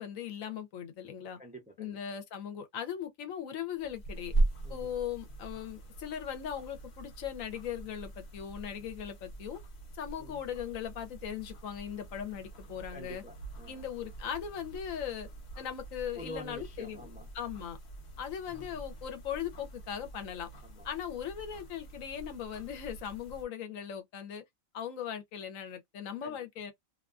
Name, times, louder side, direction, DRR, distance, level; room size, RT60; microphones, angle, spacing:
voice 1, 0.0-1.4 1.8-4.3 4.7-9.6 9.9-13.2 13.7-15.3 15.6-17.0 17.3-17.8 18.2-20.5 20.8-24.4 24.7-26.7, left 9 dB, 75° left, 1.1 m, -39 dB
voice 2, 1.4-2.0 4.6-4.9 10.2-10.4 12.9-13.8 16.1-17.3 20.6-20.9 26.2-26.4, equal, 15° right, 0.3 m, -47 dB
sound 1, 3.8-23.4, right 2 dB, 55° left, 1.0 m, -40 dB
2.6 x 2.3 x 2.4 m
omnidirectional pair, 1.4 m